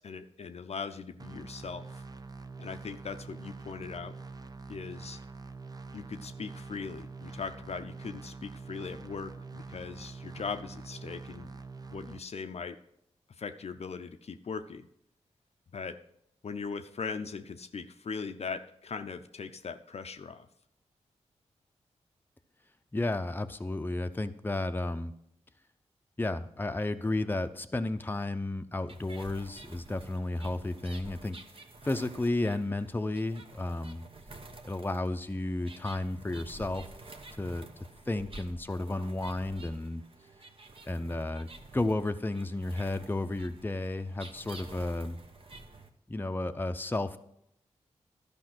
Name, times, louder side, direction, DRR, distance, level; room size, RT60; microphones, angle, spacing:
voice 1, 0.0-1.9 2.6-4.1 4.7-5.2 5.9-11.6 11.9-12.8 13.4-14.9 15.7-16.0 16.4-20.5, left 5 dB, 60° left, 8 dB, 0.6 m, -40 dB
sound 1, 1.2-12.2, right 4 dB, 30° right, 0.6 m, -45 dB
voice 2, 22.9-25.1 26.2-31.4 31.8-34.1 34.6-36.8 37.4-37.7 38.1-40.0 40.9-45.2 46.1-47.2, left 2 dB, 15° left, 8 dB, 0.7 m, -32 dB
sound 2, 28.9-45.9, right 2 dB, 50° right, 1.1 m, -50 dB
11.5 x 5.2 x 6.1 m, 0.76 s
cardioid pair, 50°, 12 cm